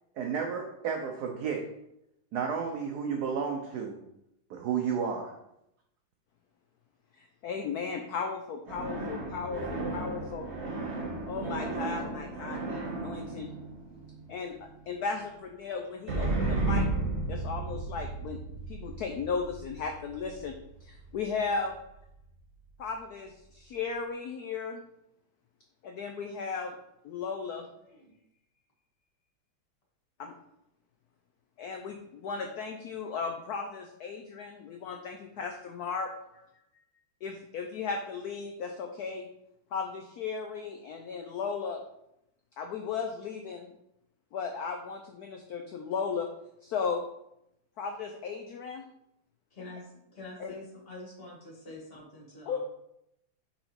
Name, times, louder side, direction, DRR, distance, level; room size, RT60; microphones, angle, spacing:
voice 1, 0.2-1.7 2.3-4.0 4.5-5.4, right 6 dB, 70° right, 2 dB, 1.0 m, -32 dB
voice 2, 7.2-10.5 11.2-13.5 14.3-16.9 17.3-18.4 18.7-21.7 22.8-24.8 25.8-26.7 27.0-27.7 30.2-30.3 31.6-36.1 37.2-39.3 39.7-41.8 42.6-43.7 44.3-46.3 46.6-47.0 47.8-48.9 50.4-50.5 52.5-52.6, left 5 dB, 90° left, 4 dB, 0.8 m, -36 dB
sound 1, 8.7-14.6 16.1-21.4, right 2 dB, 40° right, 1.3 m, -34 dB
voice 3, 27.5-28.2 36.3-36.8 49.5-52.6, left 2 dB, 30° left, -3 dB, 2.0 m, -47 dB
5.7 x 3.9 x 4.3 m, 0.80 s
omnidirectional pair, 2.3 m